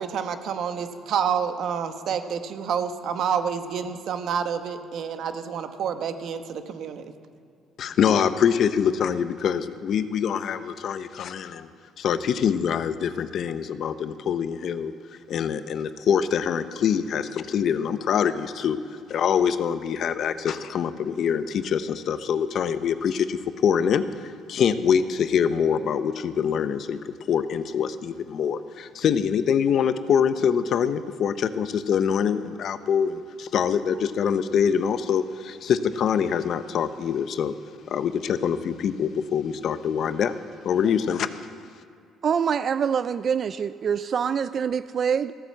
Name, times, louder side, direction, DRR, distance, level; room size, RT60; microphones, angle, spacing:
voice 1, 0.0-7.1, right 7 dB, 65° right, 8 dB, 1.1 m, -28 dB
voice 2, 7.8-11.7 12.0-14.9 15.3-18.8 19.1-27.0 27.3-37.5 37.9-40.4 40.6-41.5, left 7 dB, 60° left, 12 dB, 0.7 m, -24 dB
voice 3, 42.2-45.3, right 7 dB, 50° right, 14 dB, 0.3 m, -25 dB
15.0 x 9.0 x 7.5 m, 2.4 s
cardioid pair, 90°, 0 cm